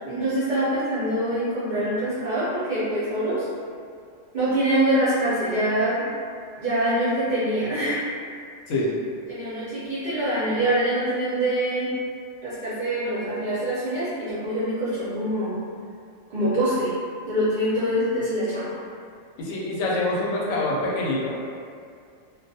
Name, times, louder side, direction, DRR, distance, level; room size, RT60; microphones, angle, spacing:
voice 1, 0.0-3.5 4.3-6.1 6.6-8.0 9.3-11.9 12.4-15.6 16.3-16.9 17.3-18.7, right 1 dB, 55° right, -12 dB, 0.5 m, -24 dB
voice 2, 19.4-21.4, left 2 dB, 75° left, -5 dB, 0.9 m, -25 dB
2.3 x 2.2 x 2.6 m, 2.3 s
omnidirectional pair, 1.4 m